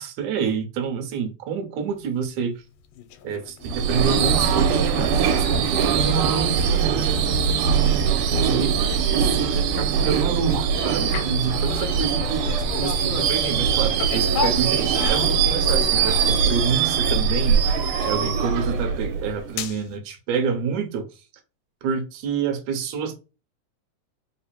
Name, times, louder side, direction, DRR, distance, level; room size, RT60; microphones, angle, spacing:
voice 1, 0.0-2.6 3.2-21.2 21.8-23.2, right 6 dB, 70° right, 2.0 m, -28 dB
sound 1, 2.9-4.0 4.5-4.8 5.1-7.3 7.6-7.7 8.1-20.0, left 9 dB, 85° left, 2.2 m, -37 dB
Subway metro underground / Screech, 3.6-19.6, right 6 dB, 90° right, 2.3 m, -22 dB
5.1 x 2.0 x 4.2 m
omnidirectional pair, 3.8 m